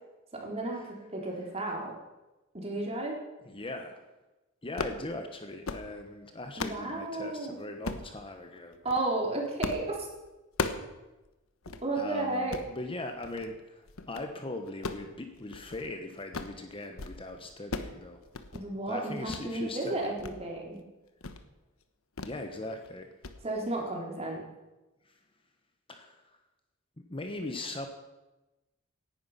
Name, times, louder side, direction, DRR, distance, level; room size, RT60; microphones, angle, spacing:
voice 1, 0.3-1.9 2.5-3.2 6.6-7.6 8.8-10.1 11.8-12.6 18.5-20.8 23.4-24.4, right 2 dB, 30° right, -1 dB, 3.8 m, -33 dB
voice 2, 3.4-4.0 4.6-8.8 11.9-18.2 18.9-20.2 22.2-23.1 25.0-25.1 25.9-26.2 27.0-27.9, left 2 dB, 25° left, 5 dB, 1.2 m, -40 dB
sound 1, 4.6-5.0 5.5-5.9 6.3-6.9 7.8-8.1 8.7-9.0 9.6-9.9 10.2-10.9 11.3-11.4 11.7-11.8 12.3-12.7 13.2-13.5 13.9-14.3 14.7-15.9 16.2-16.6 16.9-17.2 17.4-18.0 18.2-18.7 19.3-19.5 19.9-20.3 20.7-20.8 21.2-21.4 22.2-22.4 22.7-22.9 23.2-23.4, left 3 dB, 80° left, 1.2 m, -37 dB
17.5 x 11.0 x 5.8 m, 1.1 s
head